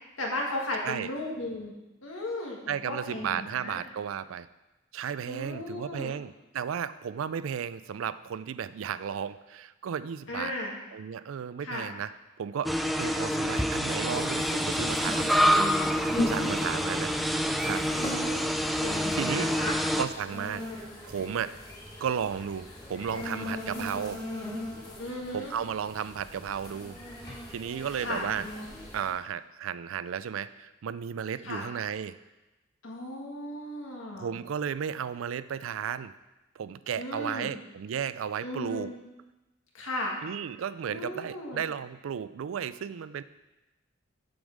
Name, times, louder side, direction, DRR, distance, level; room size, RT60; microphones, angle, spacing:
voice 1, 0.2-1.7 2.0-3.8 5.3-6.1 10.3-10.7 11.6-11.9 16.1-16.5 18.0-18.5 18.8-19.7 23.7-23.9 25.0-25.5 28.0-28.2 31.4-31.6 32.8-34.3 37.0-37.5 38.4-38.9 39.7-40.1 40.9-41.6, left 1 dB, 85° left, -1 dB, 1.8 m, -35 dB
voice 2, 2.7-4.5 4.9-10.5 10.9-12.1 12.4-15.3 16.2-17.1 17.6-17.8 19.1-21.6 22.0-24.2 25.3-27.0 27.2-28.5 28.9-32.2 34.2-36.1 36.6-38.9 40.2-43.2, right 8 dB, 85° right, 15 dB, 0.4 m, -34 dB
sound 1, 12.6-20.1, equal, ahead, 0.3 m, -27 dB
sound 2, 14.1-29.1, left 1 dB, 20° left, 1.9 m, -39 dB
7.0 x 5.3 x 6.4 m, 1.0 s
head